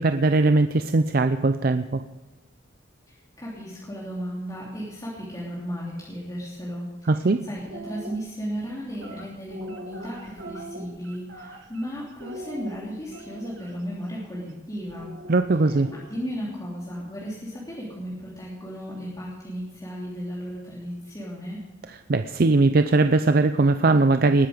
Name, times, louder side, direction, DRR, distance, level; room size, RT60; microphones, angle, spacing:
voice 1, 0.0-2.0 7.1-7.4 15.3-15.9 22.1-24.5, right 3 dB, 50° right, 9 dB, 0.5 m, -20 dB
voice 2, 3.1-15.1 15.6-15.7 16.1-21.6, equal, 20° left, -6 dB, 3.2 m, -35 dB
sound 1, 7.6-8.2 8.9-11.9 12.2-13.7 14.9-16.3, right 1 dB, 70° right, 2.2 m, -41 dB
20.0 x 10.5 x 5.1 m, 1.1 s
head